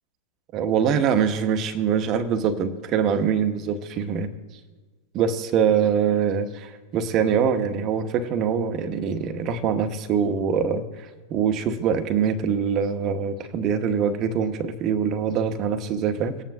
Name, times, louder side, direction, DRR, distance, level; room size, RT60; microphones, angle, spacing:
voice 1, 0.5-4.3 5.1-16.4, right 7 dB, 35° right, 8 dB, 0.9 m, -24 dB
19.5 x 9.0 x 2.6 m, 1.4 s
figure-of-eight pair, 90°, 0 cm